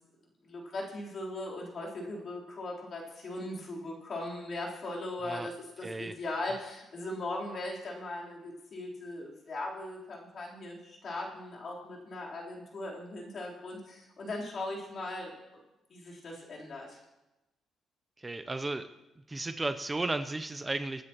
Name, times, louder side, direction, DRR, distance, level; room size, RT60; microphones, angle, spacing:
voice 1, 0.4-15.3 15.9-17.0, left 2 dB, 50° left, -3 dB, 3.7 m, -39 dB
voice 2, 5.8-6.1 18.2-18.9 19.3-21.0, right 2 dB, 20° right, 11 dB, 0.6 m, -34 dB
25.0 x 9.6 x 3.0 m, 1.0 s
cardioid pair, 90°, 0 cm